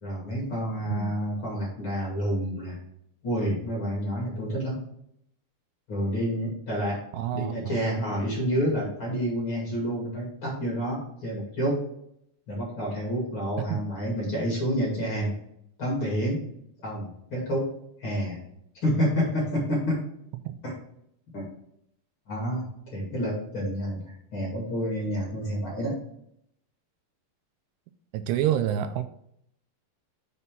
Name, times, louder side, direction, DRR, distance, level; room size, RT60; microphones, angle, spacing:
voice 1, 0.0-2.8 3.2-4.8 5.9-7.0 7.3-11.8 12.5-15.3 15.8-16.4 16.8-17.7 18.0-18.4 18.8-20.0 20.6-20.7 21.3-21.5 22.3-26.0, equal, 35° left, -5 dB, 2.5 m, -29 dB
voice 2, 7.1-7.8 13.6-13.8 20.5-20.6 28.1-29.0, right 11 dB, 85° right, 9 dB, 2.6 m, -28 dB
7.1 x 4.2 x 5.3 m, 0.73 s
omnidirectional pair, 4.9 m